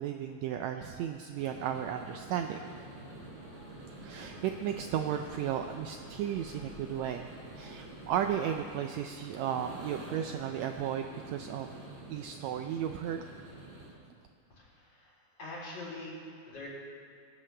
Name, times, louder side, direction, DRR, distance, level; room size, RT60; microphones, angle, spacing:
voice 1, 0.0-2.6 4.0-11.7 12.1-13.2, right 9 dB, 90° right, 5 dB, 1.5 m, -34 dB
sound 1, 1.3-13.9, right 1 dB, 50° right, 4.5 m, -48 dB
sound 2, 3.2-8.5, left 1 dB, 25° left, 5.1 m, -56 dB
voice 2, 14.5-16.7, left 2 dB, 45° left, -6 dB, 4.5 m, -44 dB
23.0 x 12.5 x 3.4 m, 2.3 s
omnidirectional pair, 3.7 m